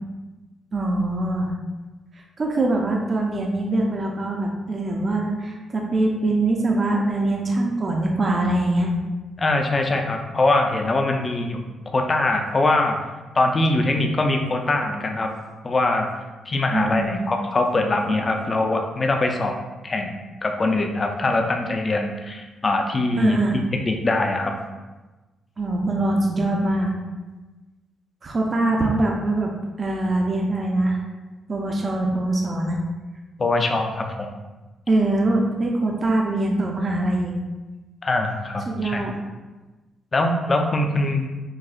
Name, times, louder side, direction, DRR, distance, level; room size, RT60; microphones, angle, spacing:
voice 1, 0.7-1.5 2.4-8.9 16.7-17.3 23.2-23.6 25.6-26.9 28.2-29.5 29.8-31.0 31.5-32.8 34.9-37.3 38.7-39.1, right 2 dB, 35° right, 0 dB, 0.5 m, -23 dB
voice 2, 9.4-11.6 11.9-13.0 13.3-15.3 15.6-16.1 16.5-19.5 19.8-24.6 33.4-34.3 38.0-39.0 40.1-41.3, left 2 dB, 30° left, 3 dB, 0.4 m, -22 dB
6.2 x 2.3 x 2.4 m, 1.2 s
cardioid pair, 130°, 0 cm